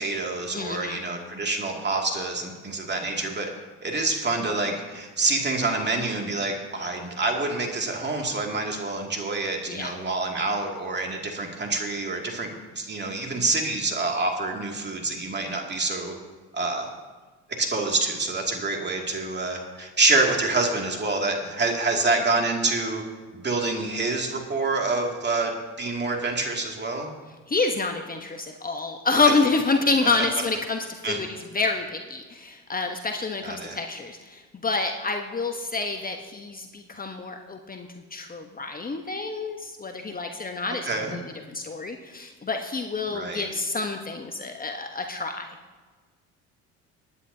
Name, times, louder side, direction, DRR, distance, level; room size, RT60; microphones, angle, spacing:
voice 1, 0.0-3.5 3.8-16.1 16.5-16.9 17.6-23.0 23.3-27.1 30.0-30.1 31.0-31.2 33.4-33.8 40.9-41.2 43.1-43.5, right 3 dB, 30° right, 1 dB, 2.4 m, -27 dB
voice 2, 0.5-1.0 9.7-9.9 27.5-41.2 41.5-45.5, left 3 dB, 25° left, 4 dB, 1.1 m, -28 dB
20.5 x 9.9 x 2.8 m, 1.4 s
supercardioid pair, 70°, 35 cm